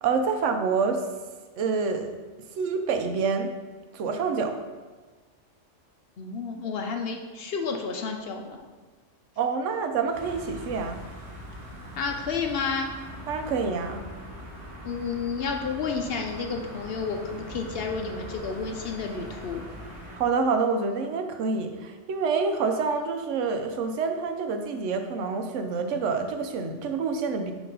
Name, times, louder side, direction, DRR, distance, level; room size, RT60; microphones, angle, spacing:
voice 1, 0.0-1.1 1.6-2.2 2.6-3.5 3.9-4.5 9.4-11.0 13.3-14.0 20.1-27.5, right 5 dB, 80° right, 6 dB, 1.0 m, -27 dB
voice 2, 6.2-8.6 12.0-12.9 14.8-19.7, left 5 dB, 60° left, 3 dB, 0.7 m, -31 dB
sound 1, 10.1-20.2, equal, 25° right, 1.4 m, -41 dB
6.0 x 3.0 x 5.3 m, 1.4 s
omnidirectional pair, 1.2 m